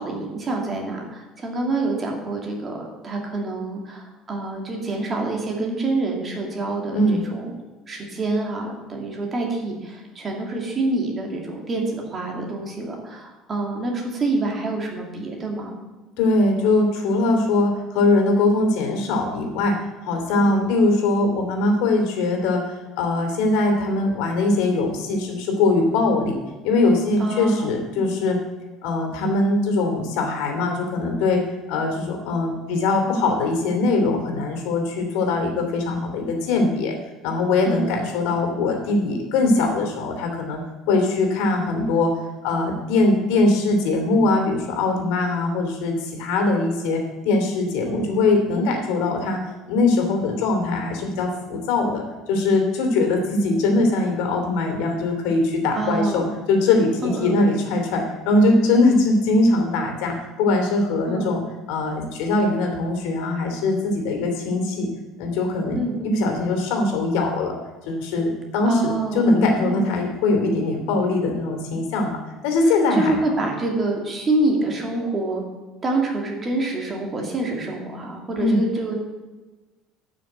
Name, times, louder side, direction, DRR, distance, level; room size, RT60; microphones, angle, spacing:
voice 1, 0.0-7.5 7.9-15.8 20.3-20.6 27.2-27.8 37.7-37.9 47.9-48.1 55.7-56.3 57.0-57.5 61.1-61.4 65.7-66.0 68.7-69.2 69.6-69.9 72.9-75.4 75.8-79.0, right 2 dB, 20° right, 0 dB, 2.2 m, -26 dB
voice 2, 16.2-26.4 26.6-28.4 28.8-37.0 37.2-40.6 40.9-42.1 42.4-49.4 49.7-61.4 61.7-64.9 65.2-67.5 67.8-72.2 72.4-73.2 78.4-78.6, left 2 dB, 75° left, 3 dB, 2.9 m, -21 dB
11.0 x 6.3 x 8.0 m, 1.2 s
cardioid pair, 170°, 0 cm